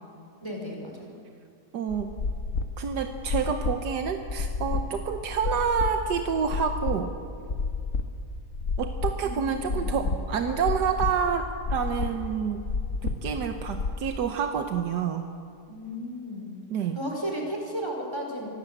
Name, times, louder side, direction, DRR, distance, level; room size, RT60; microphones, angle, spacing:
voice 1, 0.4-1.1 9.7-10.0 15.7-16.5 16.9-18.5, equal, 15° right, 0 dB, 4.8 m, -34 dB
voice 2, 1.7-2.1 2.8-7.1 8.8-12.6 13.0-15.3 16.7-17.0, right 7 dB, 85° right, 6 dB, 1.6 m, -28 dB
Heart Beat Slow, 1.9-13.9, left 4 dB, 55° left, 1.6 m, -31 dB
25.5 x 16.0 x 8.0 m, 2.4 s
omnidirectional pair, 1.7 m